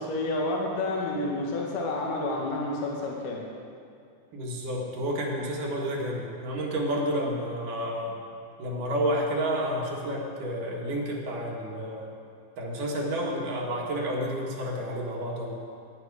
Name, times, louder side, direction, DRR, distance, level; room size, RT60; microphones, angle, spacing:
voice 1, 0.0-3.4, left 2 dB, 75° left, -2 dB, 3.1 m, -29 dB
voice 2, 4.3-8.2 8.6-12.1 12.6-15.5, equal, 75° right, -1 dB, 3.3 m, -30 dB
17.0 x 9.5 x 4.9 m, 2.3 s
omnidirectional pair, 3.8 m